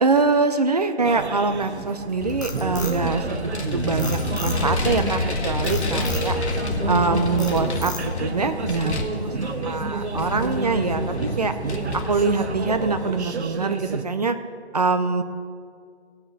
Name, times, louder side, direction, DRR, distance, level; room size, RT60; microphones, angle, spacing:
voice 1, 0.0-6.4 6.9-7.9 8.2-11.5 11.9-14.4 14.7-15.2, right 4 dB, 40° right, 9 dB, 0.6 m, -24 dB
sound 1, 1.0-14.1, right 4 dB, 85° right, 0.9 m, -31 dB
Frog, 2.1-3.6 4.0-4.9 5.6-6.3 6.8-7.0 7.4-8.3, left 3 dB, 15° left, 0.7 m, -35 dB
Vehicle, 2.2-13.1, left 2 dB, 85° left, 1.7 m, -28 dB
17.5 x 5.9 x 5.4 m, 2.3 s
hypercardioid pair, 165°, 33 cm